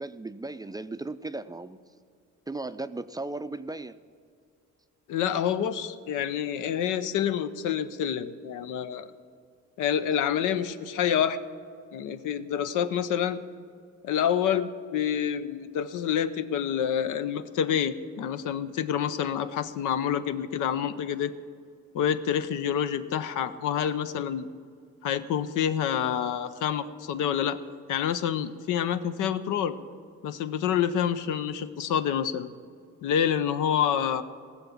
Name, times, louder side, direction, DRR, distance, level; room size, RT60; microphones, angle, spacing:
voice 1, 0.0-1.8 2.5-4.0, right 2 dB, 15° right, 11 dB, 0.4 m, -36 dB
voice 2, 5.1-9.1 9.8-11.4 11.9-13.4 14.0-21.3 21.9-24.5 25.0-27.6 27.9-29.8 30.2-32.5 33.0-34.2, left 9 dB, 85° left, 11 dB, 0.7 m, -27 dB
17.5 x 7.2 x 7.1 m, 2.3 s
cardioid pair, 90°, 30 cm